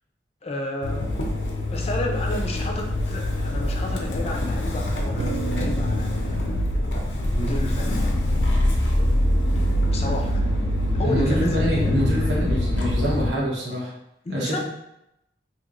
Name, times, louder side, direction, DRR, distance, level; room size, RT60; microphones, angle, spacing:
voice 1, 0.4-1.1 1.7-6.6 7.3-8.0 9.9-10.6 10.9-12.1 14.2-14.6, left 1 dB, 35° left, 1 dB, 0.4 m, -31 dB
Motor vehicle (road) / Engine starting, 0.8-13.3, left 1 dB, 85° left, 0.5 m, -24 dB
sound 1, 5.2-9.7, right 4 dB, 65° right, 0.4 m, -36 dB
voice 2, 11.0-13.9 14.3-14.6, right 1 dB, 80° right, -4 dB, 0.8 m, -25 dB
3.0 x 2.9 x 2.4 m, 0.85 s
head